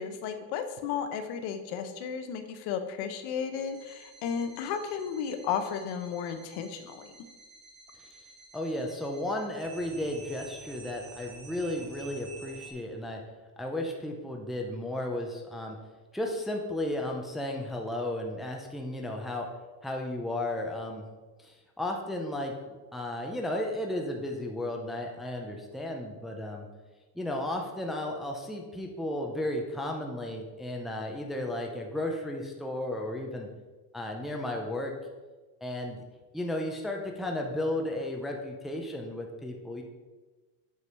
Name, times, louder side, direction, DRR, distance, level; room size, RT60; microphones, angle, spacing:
voice 1, 0.0-7.1, left 7 dB, 75° left, 8 dB, 1.0 m, -34 dB
sound 1, 3.7-12.7, right 3 dB, 55° right, 2.5 m, -50 dB
voice 2, 8.5-13.2 13.6-15.8 16.1-19.5 19.8-21.0 21.4-22.5 22.9-26.7 27.2-33.5 33.9-34.9 35.6-36.0 36.3-39.8, left 1 dB, ahead, 1 dB, 0.5 m, -34 dB
8.3 x 4.8 x 5.5 m, 1.3 s
cardioid pair, 175°, 40 cm